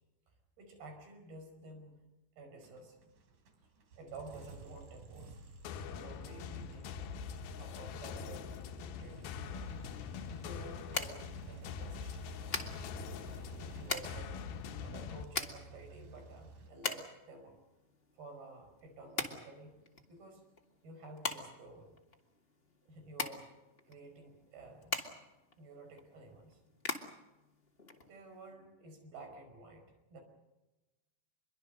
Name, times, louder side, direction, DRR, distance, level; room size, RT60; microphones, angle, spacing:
voice 1, 0.6-2.0 2.4-3.1 4.0-5.4 5.9-7.0 7.6-8.5 8.8-9.4 10.4-12.5 13.6-14.5 14.8-17.6 18.1-19.8 20.1-20.4 20.8-22.0 22.9-23.5 23.9-25.0 25.6-26.6 28.0-30.2, right 2 dB, 70° right, 5 dB, 7.0 m, -52 dB
sound 1, 2.6-16.7, right 4 dB, 55° right, 4.0 m, -53 dB
sound 2, 5.6-15.2, left 7 dB, 75° left, 2.8 m, -44 dB
sound 3, 9.7-28.5, left 3 dB, 25° left, 1.2 m, -43 dB
26.0 x 23.0 x 6.6 m, 1.0 s
omnidirectional pair, 4.5 m